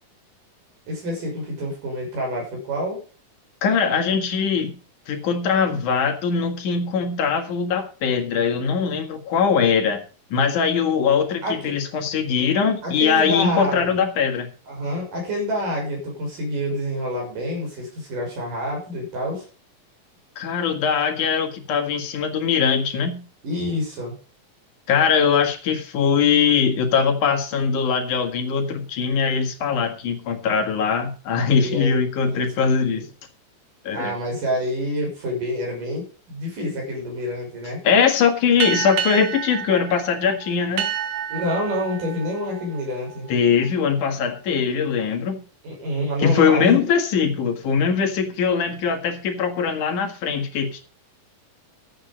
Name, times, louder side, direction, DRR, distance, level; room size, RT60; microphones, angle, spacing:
voice 1, 0.9-3.0 11.4-11.8 12.8-14.0 14.7-19.5 23.4-24.2 31.6-32.0 32.3-32.4 32.8-33.0 33.9-37.8 41.3-43.3 45.6-46.8, equal, 70° right, -1 dB, 7.7 m, -27 dB
voice 2, 3.6-4.7 5.1-10.0 10.3-14.5 20.4-23.2 24.9-33.0 33.8-34.1 37.8-40.9 43.3-45.4 46.2-50.8, left 6 dB, 65° left, 5 dB, 3.1 m, -21 dB
sound 1, 38.6-43.7, right 10 dB, 85° right, 3.2 m, -30 dB
13.0 x 8.7 x 5.3 m, 0.37 s
omnidirectional pair, 3.9 m